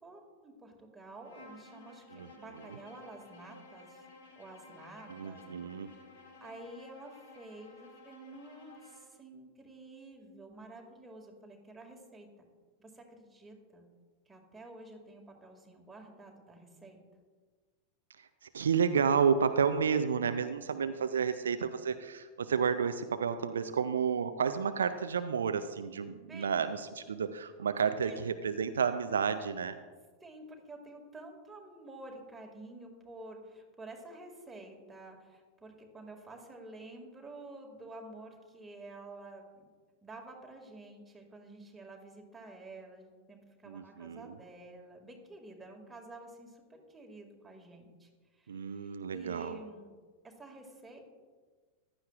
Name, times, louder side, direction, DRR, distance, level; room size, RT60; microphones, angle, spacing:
voice 1, 0.0-4.0 4.4-5.4 5.8-12.3 12.8-13.9 14.3-17.0 26.3-26.6 28.0-28.3 30.2-39.7 40.0-49.9 50.2-51.0, right 2 dB, 10° right, 1 dB, 2.0 m, -50 dB
Bowed string instrument, 1.2-9.1, left 2 dB, 60° left, 2.2 m, -55 dB
voice 2, 5.1-5.9 18.2-29.8 43.7-44.3 48.5-49.6, right 6 dB, 70° right, 10 dB, 0.4 m, -31 dB
15.0 x 11.5 x 2.4 m, 1.4 s
figure-of-eight pair, 90°, 0 cm